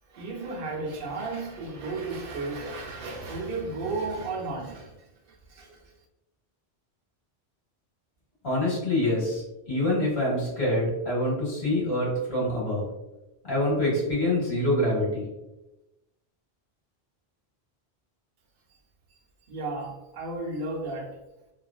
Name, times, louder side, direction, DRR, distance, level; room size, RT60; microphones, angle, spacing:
voice 1, 0.1-4.9 5.3-5.9 18.7-18.8 19.5-21.2, right 3 dB, 60° right, 0.8 m, -34 dB
voice 2, 8.4-12.8 13.4-15.2, left 1 dB, 70° left, 1.5 m, -26 dB
3.1 x 2.3 x 2.3 m
omnidirectional pair, 1.1 m